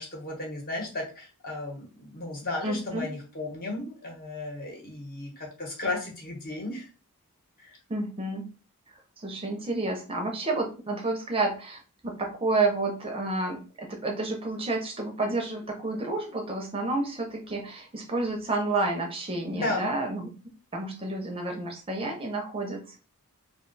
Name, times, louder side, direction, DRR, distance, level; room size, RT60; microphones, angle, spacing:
voice 1, 0.0-6.9 7.6-7.8 19.5-19.9, left 2 dB, 40° left, -1 dB, 1.0 m, -34 dB
voice 2, 2.6-3.1 7.9-8.4 9.2-20.3 20.7-23.0, right 2 dB, 25° right, 2 dB, 0.5 m, -30 dB
2.4 x 2.2 x 3.8 m, 0.34 s
head